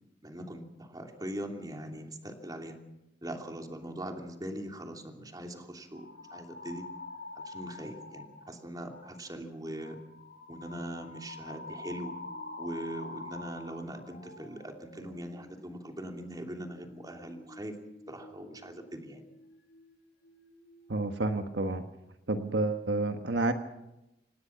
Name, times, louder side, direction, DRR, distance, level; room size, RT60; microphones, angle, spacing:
voice 1, 0.2-2.8 3.2-6.8 7.3-10.0 10.5-12.1 12.6-17.7 18.1-19.2, right 1 dB, 20° right, 3 dB, 2.9 m, -41 dB
sound 1, 5.9-8.5 8.9-9.2 9.6-20.0 20.2-20.9, left 2 dB, 70° left, 4.8 m, -47 dB
voice 2, 20.9-21.8 22.3-23.5, right 2 dB, 75° right, 7 dB, 1.4 m, -29 dB
26.5 x 19.0 x 5.9 m, 0.91 s
head